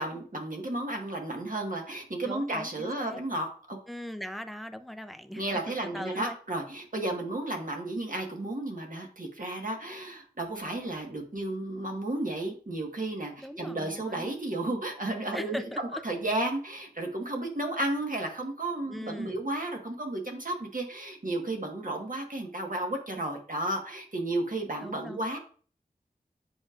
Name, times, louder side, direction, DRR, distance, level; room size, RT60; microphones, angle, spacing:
voice 1, 0.0-3.8 5.3-15.6 16.0-25.4, right 2 dB, 60° right, 1 dB, 1.5 m, -33 dB
voice 2, 2.2-3.2 3.9-6.4 13.4-14.4 15.3-16.0 18.9-19.5 24.8-25.2, equal, ahead, 9 dB, 0.5 m, -40 dB
8.5 x 5.0 x 2.5 m, 0.43 s
wide cardioid pair, 50°, 16 cm